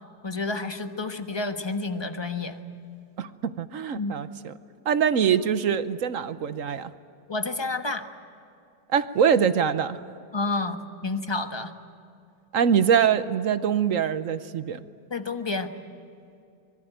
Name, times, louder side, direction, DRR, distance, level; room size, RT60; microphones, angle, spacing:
voice 1, 0.2-2.6 3.9-4.1 7.3-8.0 10.3-10.8 11.0-11.7 15.1-15.7, left 3 dB, 20° left, 7 dB, 1.1 m, -29 dB
voice 2, 3.2-4.5 4.8-6.9 8.9-10.0 12.5-14.8, right 8 dB, 60° right, 12 dB, 1.1 m, -23 dB
25.0 x 22.5 x 9.1 m, 2.5 s
omnidirectional pair, 1.7 m